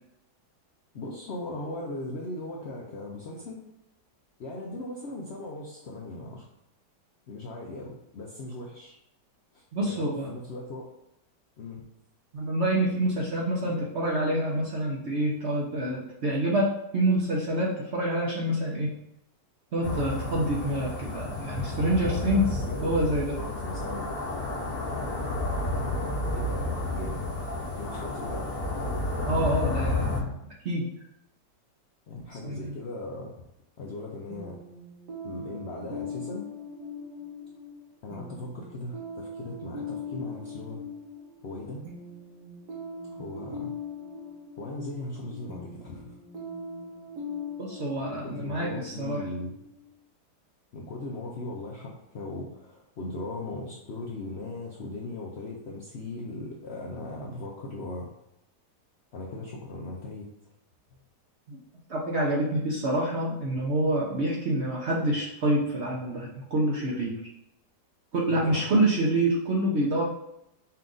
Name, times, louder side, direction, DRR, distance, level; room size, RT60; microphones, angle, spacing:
voice 1, 0.9-3.6 4.4-6.5 7.3-9.0 9.5-10.9 11.6-11.8 21.8-24.1 24.8-25.5 26.3-27.2 27.7-28.6 32.1-33.3 33.8-34.6 35.2-36.5 38.0-40.8 41.4-41.8 43.1-43.7 44.6-46.2 48.1-49.5 50.7-58.1 59.1-60.3 68.3-68.8, left 2 dB, 60° left, -3 dB, 0.7 m, -38 dB
voice 2, 9.7-10.3 12.3-18.9 19.7-23.4 29.2-30.3 30.6-30.9 32.4-32.8 47.6-49.2 61.5-61.6 61.9-67.2 68.1-70.0, right 1 dB, 55° right, -3 dB, 0.8 m, -27 dB
sound 1, 19.8-30.2, left 2 dB, 40° left, 1.2 m, -31 dB
sound 2, 34.3-49.9, left 3 dB, 75° right, 1.6 m, -41 dB
5.6 x 2.5 x 3.8 m, 0.81 s
omnidirectional pair, 1.9 m